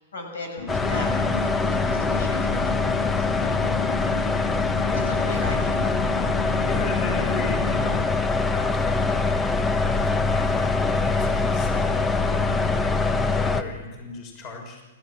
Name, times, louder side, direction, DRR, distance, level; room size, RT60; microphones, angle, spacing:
voice 1, 0.0-4.1 4.9-6.0, left 2 dB, 80° left, 3 dB, 7.1 m, -38 dB
sound 1, 0.6-8.0, left 3 dB, 65° left, 3.8 m, -34 dB
sound 2, 0.7-13.6, left 3 dB, 15° left, 1.3 m, -23 dB
voice 2, 4.8-5.5 6.6-8.9 10.0-13.0 13.3-14.8, left 3 dB, 40° left, 2 dB, 6.2 m, -38 dB
29.0 x 14.5 x 7.6 m, 1.2 s
hypercardioid pair, 115°, 0 cm